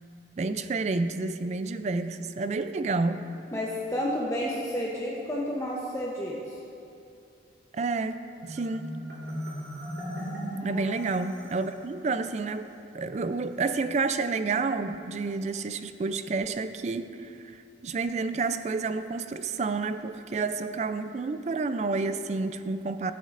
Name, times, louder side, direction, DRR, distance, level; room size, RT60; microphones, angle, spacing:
voice 1, 0.4-3.2 7.7-9.0 10.6-12.7 12.9-23.1, right 3 dB, 40° right, 11 dB, 0.3 m, -30 dB
voice 2, 3.5-6.5 10.5-11.0, equal, 15° left, -4 dB, 0.7 m, -31 dB
Marimba xylophone, 8.4-11.8, equal, 65° right, 2.2 m, -37 dB
14.5 x 8.3 x 2.5 m, 2.6 s
head